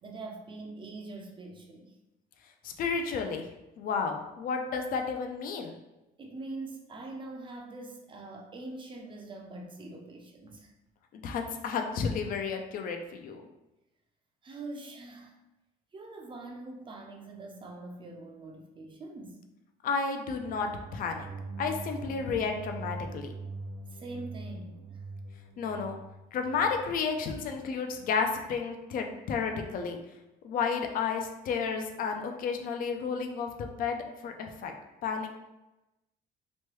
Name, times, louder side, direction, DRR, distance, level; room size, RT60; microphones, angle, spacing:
voice 1, 0.0-1.9 6.2-10.7 14.4-15.4 15.9-19.4 23.9-25.0, right 2 dB, 30° right, 2 dB, 0.5 m, -43 dB
voice 2, 2.6-3.5 3.8-5.8 11.1-13.4 19.8-21.3 21.6-23.3 25.6-26.0 26.3-30.0 30.4-34.7 35.0-35.3, left 5 dB, 55° left, 4 dB, 0.5 m, -32 dB
sound 1, 20.3-27.5, right 3 dB, 75° right, 0.5 m, -43 dB
3.1 x 2.2 x 3.1 m, 0.98 s
cardioid pair, 110°, 17 cm